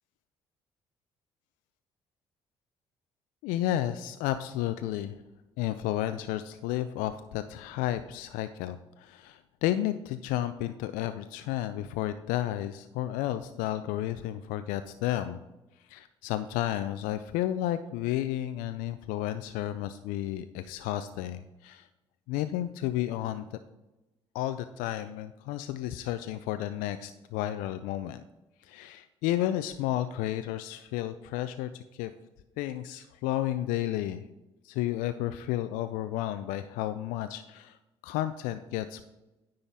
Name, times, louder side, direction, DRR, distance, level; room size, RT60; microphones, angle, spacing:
voice 1, 3.4-5.1 5.6-15.4 15.9-21.9 22.3-23.5 24.3-28.2 28.6-32.1 32.6-34.3 34.6-37.8 38.0-39.0, left 13 dB, 70° left, 11 dB, 0.4 m, -32 dB
9.8 x 3.9 x 7.1 m, 1.0 s
hypercardioid pair, 50°, 14 cm